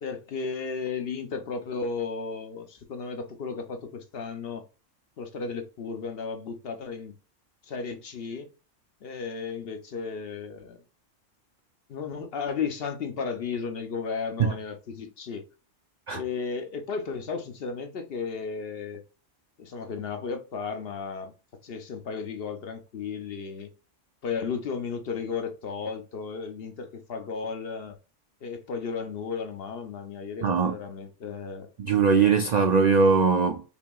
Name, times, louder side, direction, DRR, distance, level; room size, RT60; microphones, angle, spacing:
voice 1, 0.0-4.6 5.2-7.1 7.6-8.5 9.0-10.8 11.9-15.4 16.1-19.0 19.6-21.3 21.6-23.7 24.2-28.0 28.4-31.7, left 5 dB, 55° left, 0.8 m, -34 dB
voice 2, 30.4-30.7 31.8-33.6, right 5 dB, 90° right, 0.3 m, -21 dB
5.3 x 2.9 x 2.2 m
omnidirectional pair, 1.3 m